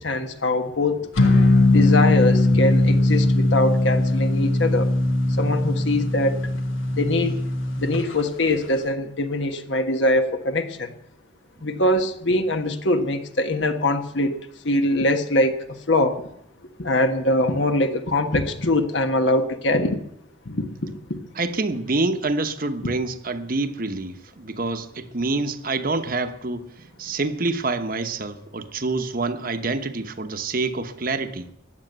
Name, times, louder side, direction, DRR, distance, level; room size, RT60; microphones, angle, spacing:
voice 1, 0.0-4.9 5.4-6.4 6.9-7.3 7.8-10.9 11.6-14.4 14.6-16.3 16.8-20.0 20.4-21.2, left 1 dB, 65° left, 7 dB, 1.4 m, -23 dB
sound 1, 1.2-8.0, left 2 dB, 90° left, 1.7 m, -20 dB
voice 2, 21.3-31.5, right 3 dB, 45° right, 8 dB, 1.0 m, -27 dB
15.5 x 10.5 x 8.0 m, 0.77 s
head